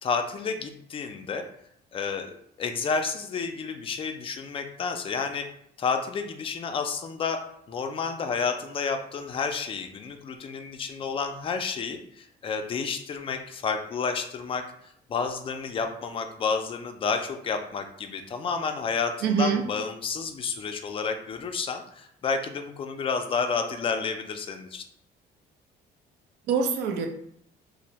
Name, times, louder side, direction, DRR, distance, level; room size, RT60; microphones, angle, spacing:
voice 1, 0.0-1.4 1.9-5.5 5.8-14.6 15.1-24.8, left 5 dB, 35° left, 6 dB, 0.3 m, -30 dB
voice 2, 19.2-19.7 26.5-27.1, right 6 dB, 85° right, 5 dB, 0.5 m, -24 dB
2.5 x 2.0 x 2.9 m, 0.70 s
cardioid pair, 110°, 17 cm